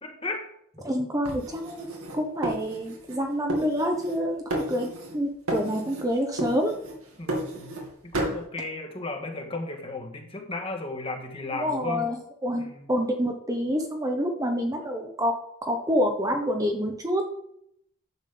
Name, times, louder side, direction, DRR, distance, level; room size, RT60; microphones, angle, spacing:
voice 1, 0.0-0.5 7.2-12.1 12.6-12.9, left 2 dB, 25° left, 3 dB, 1.6 m, -35 dB
voice 2, 0.8-1.9 2.1-4.9 5.1-6.7 11.5-15.3 15.6-17.2, equal, 15° right, 3 dB, 1.0 m, -27 dB
sound 1, 1.3-3.2 3.5-4.2 4.5-5.2 5.5-6.1 6.4-7.9 8.1-8.4, right 1 dB, 85° right, 2.7 m, -32 dB
11.0 x 7.4 x 3.8 m, 0.72 s
head